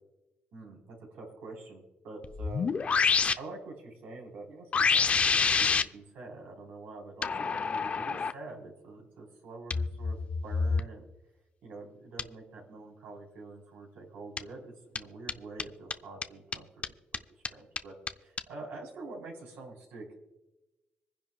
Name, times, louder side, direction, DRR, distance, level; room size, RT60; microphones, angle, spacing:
voice 1, 0.5-2.7 3.4-11.0 11.6-16.7 17.3-17.9 18.2-20.2, right 3 dB, 85° right, 0 dB, 4.1 m, -46 dB
sound 1, 2.2-3.3 4.7-5.8 7.2-8.3 9.7-10.8 12.2-12.3 14.4-14.5 14.9-15.0 15.3-15.4 15.6-15.7 15.9-16.0 16.2-16.3 16.5-16.6 16.8-16.9 17.1-17.2 17.4-17.5 17.8-17.9 18.1-18.2 18.4-18.5, left 5 dB, 40° left, 0.6 m, -27 dB
25.5 x 10.5 x 2.4 m, 1.0 s
cardioid pair, 105°, 4 cm